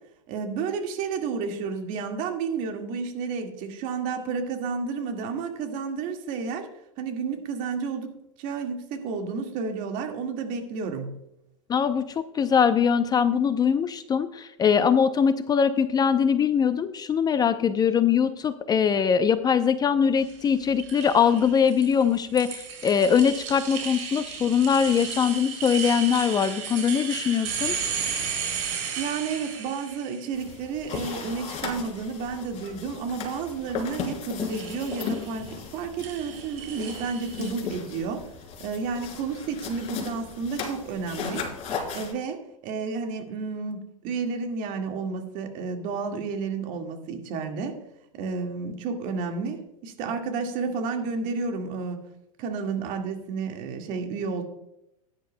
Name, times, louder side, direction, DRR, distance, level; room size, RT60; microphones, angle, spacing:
voice 1, 0.3-6.7 7.0-11.1 29.0-38.2 38.6-41.4 41.9-47.8 48.1-52.0 52.4-54.4, right 5 dB, 50° right, 4 dB, 1.8 m, -31 dB
voice 2, 11.7-12.1 12.3-27.8, left 7 dB, 20° left, 11 dB, 0.6 m, -22 dB
sound 1, 20.2-30.5 30.9-31.7 34.4-35.4 36.0-37.5, right 7 dB, 65° right, 3.1 m, -34 dB
sound 2, 30.3-42.1, left 6 dB, 40° left, 3.3 m, -36 dB
15.5 x 10.5 x 2.2 m, 0.83 s
hypercardioid pair, 105°, 18 cm